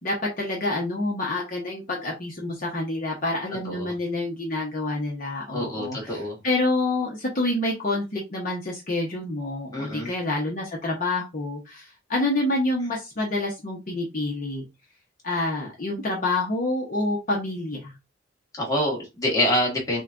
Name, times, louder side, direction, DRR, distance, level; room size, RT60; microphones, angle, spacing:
voice 1, 0.0-14.6 15.2-17.9, left 2 dB, 45° left, -2 dB, 0.9 m, -27 dB
voice 2, 5.5-6.4 9.7-10.1 18.5-20.0, left 1 dB, 20° left, -2 dB, 1.4 m, -26 dB
6.3 x 2.3 x 2.5 m, 0.24 s
head